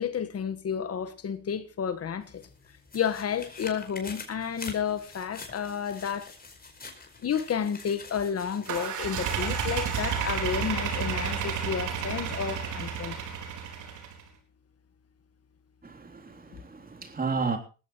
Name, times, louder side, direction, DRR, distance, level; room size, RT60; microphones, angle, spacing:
voice 1, 0.0-2.5 2.9-6.3 7.2-13.2, left 7 dB, 50° left, 1.6 m, -31 dB
sound 1, 2.2-10.9 11.4-11.5, left 3 dB, 30° left, 5.1 m, -46 dB
sound 2, 8.7-14.2, right 7 dB, 80° right, 4.2 m, -31 dB
voice 2, 15.8-17.6, right 4 dB, 30° right, 3.5 m, -32 dB
20.0 x 15.5 x 3.1 m
cardioid pair, 90°, 30 cm